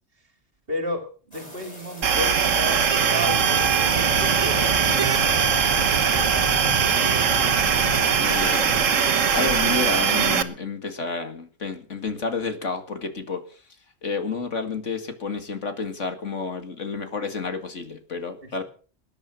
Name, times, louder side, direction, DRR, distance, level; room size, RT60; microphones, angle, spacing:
voice 1, 0.7-6.6 18.4-18.6, equal, 45° right, 6 dB, 3.1 m, -33 dB
sound 1, 1.3-10.1, left 1 dB, 30° left, 5.5 m, -42 dB
sound 2, 2.0-10.4, right 7 dB, 75° right, 1.6 m, -21 dB
sound 3, 3.2-8.3, right 1 dB, 30° right, 6.1 m, -32 dB
voice 2, 8.2-8.9 9.2-13.6 14.0-18.6, left 4 dB, 70° left, 8 dB, 2.5 m, -30 dB
19.5 x 10.5 x 6.0 m, 0.41 s
omnidirectional pair, 1.3 m